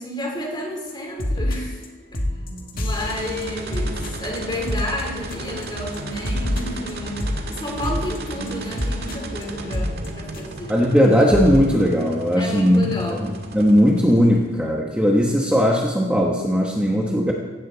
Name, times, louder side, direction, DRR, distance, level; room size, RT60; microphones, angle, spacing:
voice 1, 0.0-1.8 2.1-2.2 2.7-10.8 12.4-13.2, left 1 dB, 25° left, 0 dB, 3.4 m, -31 dB
sound 1, 0.9-1.0 1.2-1.9 2.1-5.7 5.9-10.7 11.0-11.1 11.3-11.6, left 1 dB, 50° left, 1.9 m, -28 dB
sound 2, 2.2-10.3, right 1 dB, 90° right, 3.8 m, -39 dB
sound 3, 3.0-14.6, right 2 dB, 55° right, 1.8 m, -35 dB
voice 2, 10.7-17.3, equal, 5° right, -1 dB, 1.2 m, -18 dB
17.0 x 15.0 x 4.0 m, 1.2 s
head